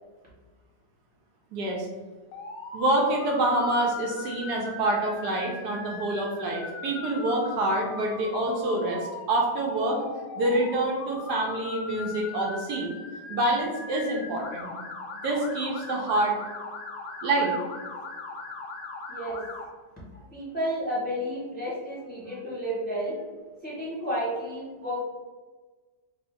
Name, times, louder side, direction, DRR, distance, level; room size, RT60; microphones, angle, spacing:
voice 1, 1.5-1.9 2.7-10.0 10.4-12.9 13.3-14.7 15.2-16.4 17.2-17.5, right 1 dB, 75° right, 0 dB, 1.1 m, -26 dB
Motor vehicle (road) / Siren, 2.3-19.6, left 4 dB, 65° left, 0.9 m, -39 dB
voice 2, 20.1-23.2 23.6-25.0, equal, 5° left, -8 dB, 0.7 m, -31 dB
2.7 x 2.7 x 4.3 m, 1.4 s
omnidirectional pair, 1.9 m